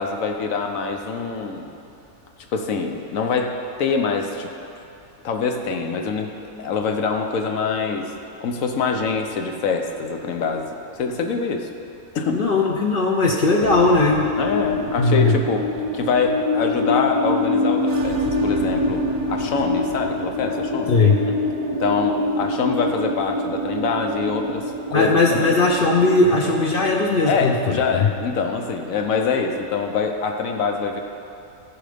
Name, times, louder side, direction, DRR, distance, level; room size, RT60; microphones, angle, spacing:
voice 1, 0.0-1.7 2.5-4.5 5.2-8.1 8.4-11.7 12.1-12.4 14.4-15.7 15.9-21.0 21.2-21.4 21.8-25.6 27.2-31.0, left 4 dB, 75° left, 4 dB, 1.2 m, -24 dB
voice 2, 12.3-14.2 15.0-15.4 20.9-21.2 24.9-28.1, left 3 dB, 50° left, -1 dB, 0.7 m, -18 dB
sound 1, 13.6-28.3, left 2 dB, 45° right, 0.9 m, -26 dB
14.5 x 5.0 x 5.1 m, 2.6 s
omnidirectional pair, 1.4 m